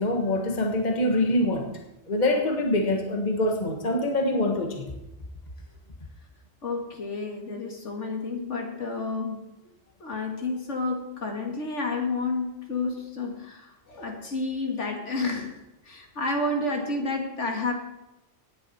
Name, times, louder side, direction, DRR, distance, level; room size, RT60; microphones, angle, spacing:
voice 1, 0.0-1.7 2.1-4.9, left 1 dB, 40° left, 3 dB, 1.5 m, -25 dB
voice 2, 6.6-9.4 10.0-15.5 15.9-17.7, left 3 dB, 75° left, 2 dB, 2.4 m, -30 dB
17.5 x 10.0 x 4.2 m, 0.95 s
omnidirectional pair, 1.3 m